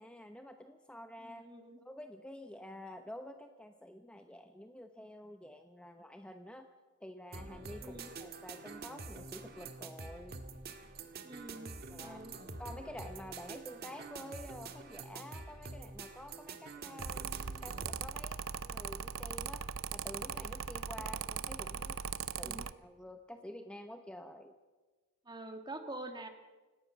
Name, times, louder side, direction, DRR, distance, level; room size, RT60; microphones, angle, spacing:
voice 1, 0.0-1.4 1.8-6.7 7.0-10.4 11.9-12.2 12.6-17.3 17.6-19.6 19.9-22.0 22.4-24.6, left 1 dB, 5° left, 6 dB, 0.9 m, -49 dB
voice 2, 1.2-1.8 7.8-8.1 11.2-12.4 21.0-21.1 22.4-22.7 25.3-26.3, right 2 dB, 20° right, 6 dB, 1.8 m, -46 dB
sound 1, 7.3-18.0, right 3 dB, 50° right, 1.8 m, -47 dB
Mechanical fan, 17.0-22.7, right 7 dB, 80° right, 0.7 m, -40 dB
29.0 x 17.5 x 6.5 m, 1.3 s
head